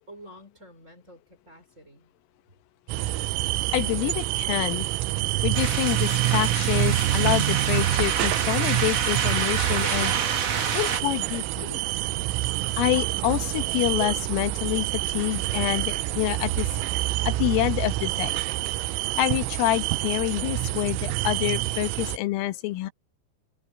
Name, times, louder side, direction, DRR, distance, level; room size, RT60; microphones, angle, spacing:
voice 1, 0.1-2.1, equal, 15° right, 5.4 m, -49 dB
sound 1, 2.9-22.2, right 16 dB, 90° right, 3.5 m, -27 dB
voice 2, 3.7-4.9 5.4-10.2 10.7-11.8 12.8-14.9 15.1-16.7 17.3-18.4 19.2-22.9, left 16 dB, 85° left, 3.8 m, -27 dB
sound 2, 5.5-11.0, right 6 dB, 45° right, 3.7 m, -28 dB
omnidirectional pair, 5.8 m